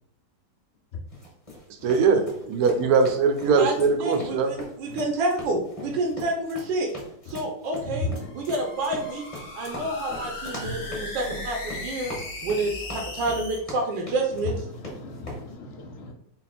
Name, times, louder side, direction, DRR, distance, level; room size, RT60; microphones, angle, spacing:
sound 1, 1.1-15.4, left 1 dB, 20° left, 1.1 m, -41 dB
voice 1, 1.8-4.5, right 5 dB, 70° right, 5 dB, 1.0 m, -21 dB
voice 2, 4.0-6.9 7.3-9.3 9.5-12.2 12.4-14.5, right 2 dB, 85° right, 1 dB, 1.4 m, -28 dB
voice 3, 7.9-8.3 10.6-10.7 14.7-16.1, left 2 dB, 70° left, 2 dB, 0.6 m, -35 dB
sound 2, 8.2-13.6, left 2 dB, 50° left, 1.1 m, -37 dB
4.0 x 2.1 x 4.1 m, 0.74 s
omnidirectional pair, 1.9 m